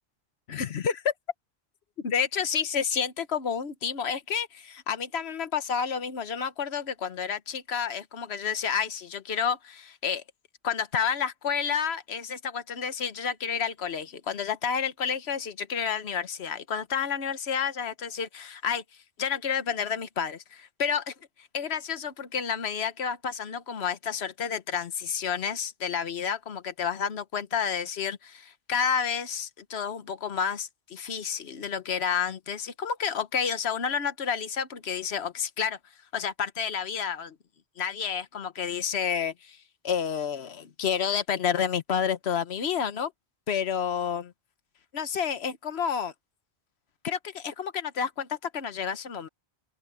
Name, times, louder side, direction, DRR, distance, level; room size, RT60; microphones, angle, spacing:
voice 1, 0.5-1.1 2.0-10.2 10.6-18.8 19.2-35.8 36.1-37.4 37.8-39.6 39.8-43.1 43.5-44.3 44.9-46.1 47.0-49.3, left 7 dB, 75° left, 1.3 m, -30 dB
open air
omnidirectional pair, 1.1 m